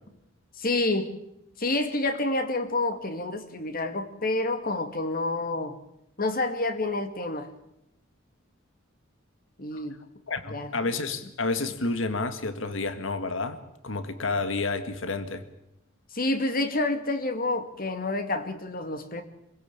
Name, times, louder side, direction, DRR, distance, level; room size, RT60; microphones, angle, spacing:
voice 1, 0.6-1.1 1.6-5.8 6.2-7.5 9.6-10.0 10.5-10.7 16.1-19.2, left 2 dB, 45° left, 9 dB, 2.4 m, -28 dB
voice 2, 10.3-13.6 13.8-15.4, left 3 dB, 70° left, 10 dB, 1.8 m, -30 dB
26.0 x 16.5 x 8.8 m, 0.84 s
head